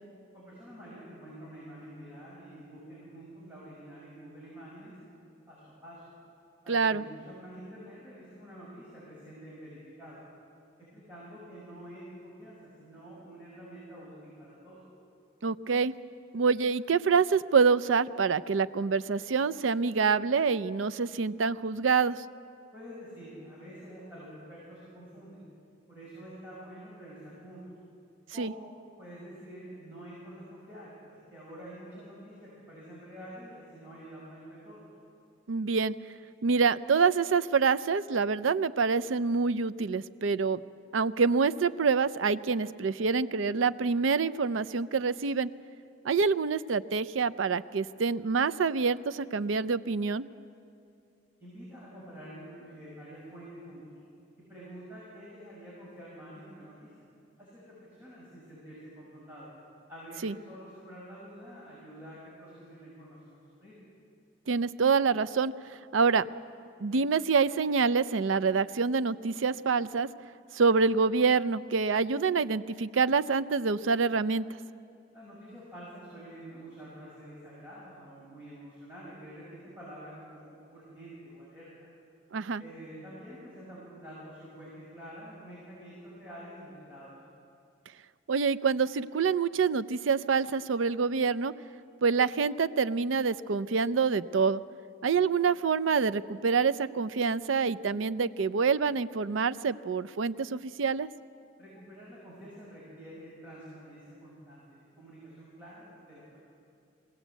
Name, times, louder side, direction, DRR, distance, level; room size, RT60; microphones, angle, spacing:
voice 1, 0.3-5.0 5.5-6.0 6.6-10.2 10.8-14.8 22.7-25.4 25.9-27.6 28.3-28.7 29.0-31.0 31.3-34.9 51.4-53.8 54.4-56.9 57.4-59.5 59.9-63.7 75.1-81.9 82.6-87.1 101.6-106.4, equal, 10° right, -9 dB, 6.0 m, -47 dB
voice 2, 6.7-7.0 15.4-15.9 16.3-22.2 28.4-28.5 35.5-35.9 36.4-40.6 40.9-45.5 46.0-50.3 60.2-60.3 64.5-65.5 65.9-66.3 66.8-70.1 70.5-74.5 82.3-82.6 88.3-91.5 92.0-94.6 95.0-101.1, right 5 dB, 90° right, 15 dB, 0.5 m, -26 dB
22.0 x 17.0 x 8.1 m, 2.5 s
head